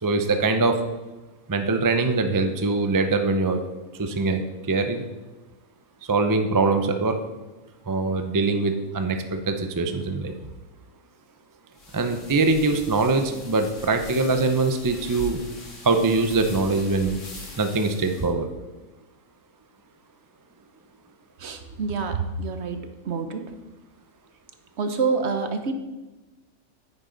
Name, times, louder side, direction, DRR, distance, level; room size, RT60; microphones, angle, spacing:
voice 1, 0.0-0.8 1.5-3.6 4.0-4.4 4.7-5.1 6.0-7.2 7.9-10.3 11.9-15.4 15.8-17.2 17.6-18.5, right 3 dB, 35° right, 6 dB, 0.3 m, -23 dB
sound 1, 11.7-18.3, left 2 dB, 60° left, 2.0 m, -41 dB
voice 2, 21.4-22.8 23.0-23.4 24.8-25.7, right 4 dB, 55° right, 7 dB, 1.1 m, -27 dB
9.5 x 9.2 x 3.9 m, 1.2 s
omnidirectional pair, 1.5 m